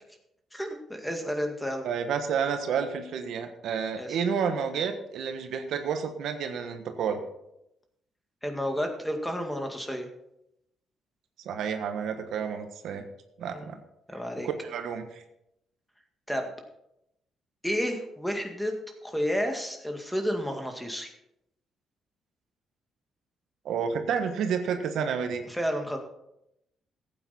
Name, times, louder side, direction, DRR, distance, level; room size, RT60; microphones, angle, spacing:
voice 1, 0.5-1.9 4.0-4.2 8.4-10.1 13.5-13.7 14.1-14.5 16.3-16.5 17.6-18.7 19.0-21.1 25.5-26.0, equal, 5° left, 4 dB, 2.0 m, -31 dB
voice 2, 1.8-7.2 11.4-13.0 13.4-13.8 14.6-15.2 23.6-25.4, right 6 dB, 75° right, 6 dB, 1.3 m, -30 dB
14.5 x 8.9 x 4.3 m, 0.83 s
cardioid pair, 90°, 0 cm